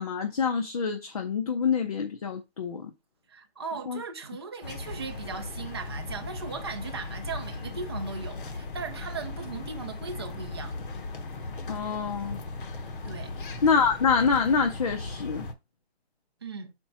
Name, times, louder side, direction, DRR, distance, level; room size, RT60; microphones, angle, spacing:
voice 1, 0.0-2.9 3.9-4.0 11.7-12.4 13.6-15.5, left 5 dB, 35° left, 0.6 m, -26 dB
voice 2, 3.3-10.8 13.0-13.4 16.4-16.7, right 5 dB, 25° right, 0.5 m, -38 dB
sound 1, 4.6-15.5, left 3 dB, 55° left, 1.0 m, -37 dB
5.1 x 4.4 x 5.8 m
hypercardioid pair, 170°, 32 cm